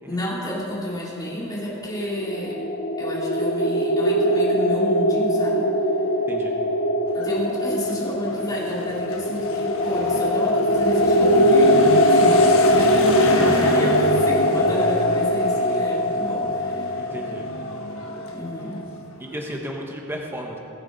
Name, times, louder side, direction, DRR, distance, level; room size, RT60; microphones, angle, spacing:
voice 1, 0.0-2.6 3.0-5.7 7.1-17.1 18.2-18.8, equal, 20° left, -6 dB, 3.6 m, -30 dB
sound 1, 1.8-18.6, equal, 45° left, 0.8 m, -21 dB
Motorcycle / Accelerating revving vroom, 7.1-19.4, left 1 dB, 70° left, 1.4 m, -30 dB
voice 2, 13.2-13.8 15.6-15.7 17.0-17.5 19.2-20.6, equal, 10° right, 0 dB, 1.3 m, -33 dB
23.0 x 8.6 x 4.2 m, 2.6 s
head